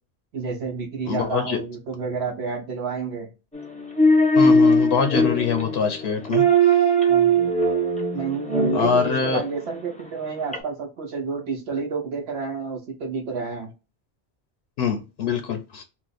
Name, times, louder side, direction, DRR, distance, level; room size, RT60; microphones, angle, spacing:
voice 1, 0.3-3.3 7.1-7.5 8.1-13.7, right 5 dB, 75° right, 0.9 m, -30 dB
voice 2, 1.0-1.6 4.4-6.4 8.7-9.4 14.8-15.8, left 6 dB, 75° left, 0.9 m, -24 dB
sound 1, 3.5-9.5 10.5-10.6, right 1 dB, 10° left, 0.5 m, -19 dB
2.9 x 2.0 x 3.9 m
omnidirectional pair, 1.1 m